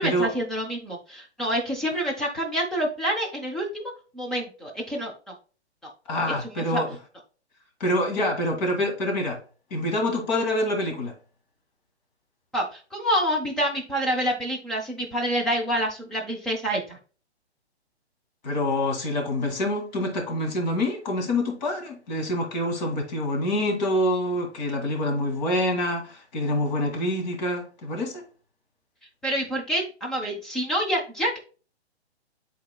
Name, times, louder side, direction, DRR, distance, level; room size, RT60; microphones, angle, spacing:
voice 1, 0.0-5.3 5.8-5.9 6.6-6.8 12.5-17.0 29.2-31.4, equal, ahead, 0.4 m, -27 dB
voice 2, 6.1-7.0 7.8-9.4 9.7-11.1 18.4-28.2, left 1 dB, 40° left, 1.9 m, -26 dB
11.0 x 3.9 x 2.2 m
figure-of-eight pair, 130°, 34 cm